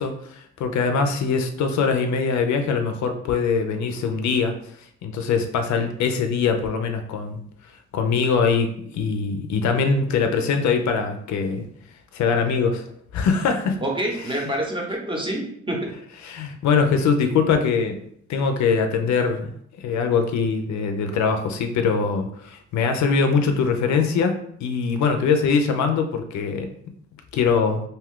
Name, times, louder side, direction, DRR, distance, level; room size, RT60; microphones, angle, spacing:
voice 1, 0.0-4.5 5.0-7.4 7.9-11.6 12.1-12.8 13.1-13.8 14.2-14.4 16.2-18.0 18.3-19.5 19.8-26.7 27.3-27.8, left 5 dB, 70° left, 6 dB, 0.5 m, -22 dB
voice 2, 13.8-15.9, right 1 dB, 15° right, 0 dB, 0.8 m, -27 dB
2.6 x 2.3 x 3.6 m, 0.69 s
cardioid pair, 90°, 30 cm